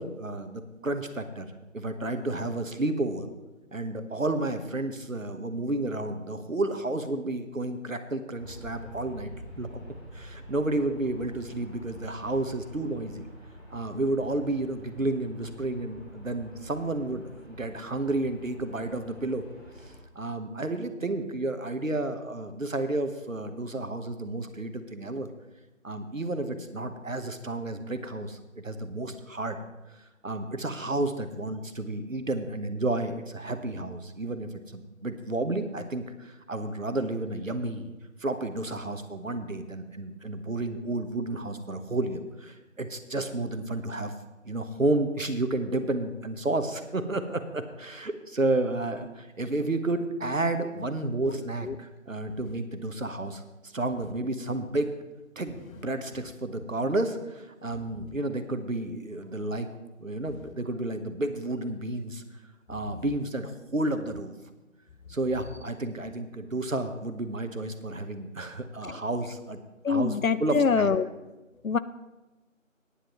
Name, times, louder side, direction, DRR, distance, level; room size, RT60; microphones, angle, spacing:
voice 1, 0.0-1.5 1.7-3.3 3.7-9.8 10.1-13.3 13.7-19.4 19.8-25.3 25.8-29.6 29.9-37.9 38.2-44.1 44.4-54.9 55.4-55.6 55.8-59.7 60.0-62.2 62.7-64.3 65.1-69.6 69.9-70.9, right 2 dB, 75° right, 8 dB, 1.2 m, -31 dB
Aircraft, 8.4-20.0, equal, 10° right, 3.8 m, -47 dB
voice 2, 69.8-71.1 71.6-71.8, left 5 dB, 85° left, 15 dB, 0.7 m, -25 dB
16.5 x 10.0 x 3.1 m, 1.1 s
figure-of-eight pair, 175°, 40 cm